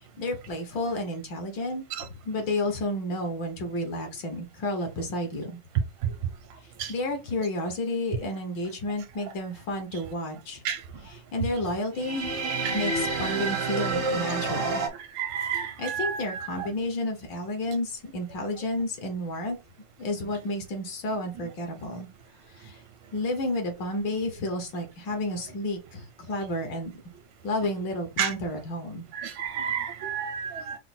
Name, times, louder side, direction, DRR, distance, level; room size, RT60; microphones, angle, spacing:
voice 1, 0.2-5.6 6.9-10.6 11.0-12.3 12.7-14.8 15.8-19.6 20.0-22.1 22.6-22.7 23.1-26.9 27.4-29.1, left 1 dB, 75° left, 2.0 m, -31 dB
sound 1, 11.9-14.9, right 3 dB, 50° right, 0.7 m, -28 dB
voice 2, 15.2-16.5 28.2-28.3 29.1-30.8, right 8 dB, 80° right, 1.5 m, -30 dB
5.7 x 2.0 x 4.2 m
omnidirectional pair, 2.0 m